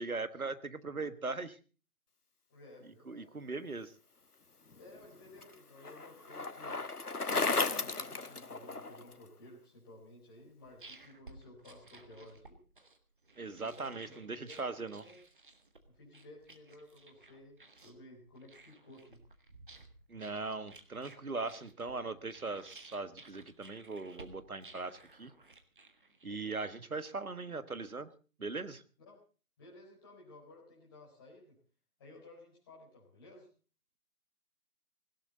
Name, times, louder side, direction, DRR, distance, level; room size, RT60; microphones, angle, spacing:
voice 1, 0.0-1.6 3.1-3.9 13.4-15.0 20.1-25.3 26.2-28.1 28.4-28.8, right 3 dB, 70° right, 13 dB, 1.5 m, -39 dB
voice 2, 2.5-3.3 4.8-6.8 7.2-12.6 13.5-15.2 15.9-19.2 29.0-29.2 29.6-31.6 32.0-33.5, left 1 dB, 15° left, -4 dB, 4.3 m, -55 dB
Bicycle, 4.7-9.1, left 3 dB, 90° left, 1.2 m, -35 dB
sound 1, 10.4-26.5, right 3 dB, 35° right, 1.6 m, -57 dB
18.0 x 16.5 x 4.0 m, 0.36 s
figure-of-eight pair, 160°, 44 cm